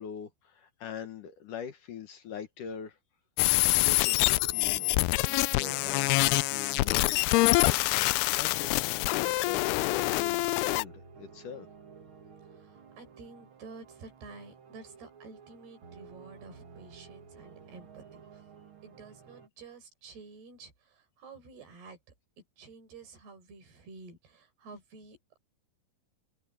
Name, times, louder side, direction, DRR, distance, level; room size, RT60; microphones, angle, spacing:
voice 1, 0.0-3.0 3.5-4.9 5.3-11.7, left 7 dB, 60° left, 2.6 m, -43 dB
sound 1, 3.4-10.8, left 21 dB, 85° left, 2.5 m, -26 dB
sound 2, 4.0-19.5, right 5 dB, 45° right, 1.8 m, -52 dB
voice 2, 12.5-18.4 18.8-22.0 22.6-25.2, right 4 dB, 75° right, 7.0 m, -50 dB
open air
omnidirectional pair, 4.6 m